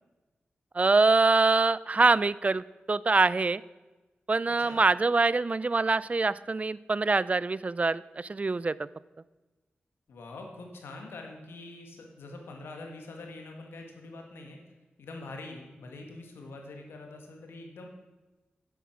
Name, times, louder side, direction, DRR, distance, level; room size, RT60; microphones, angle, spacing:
voice 1, 0.7-3.6 4.3-8.8, right 3 dB, 35° right, 19 dB, 0.4 m, -24 dB
voice 2, 4.5-4.8 10.1-14.6 15.0-17.9, left 2 dB, 90° left, 2 dB, 1.9 m, -44 dB
10.0 x 8.1 x 6.1 m, 1.2 s
cardioid pair, 50°, 4 cm